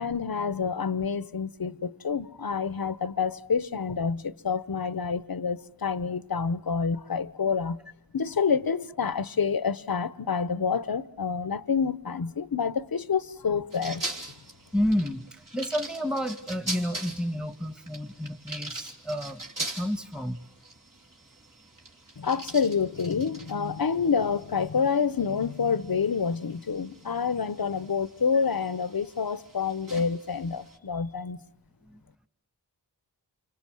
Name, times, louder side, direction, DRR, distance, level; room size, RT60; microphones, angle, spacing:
voice 1, 0.0-7.8 8.1-14.1 22.2-31.4, left 6 dB, 55° left, 1.0 m, -28 dB
sound 1, 13.7-30.8, right 2 dB, 50° right, 3.6 m, -42 dB
voice 2, 14.7-20.4 31.9-32.0, equal, ahead, 1.6 m, -30 dB
29.0 x 25.5 x 7.7 m
wide cardioid pair, 45°, 42 cm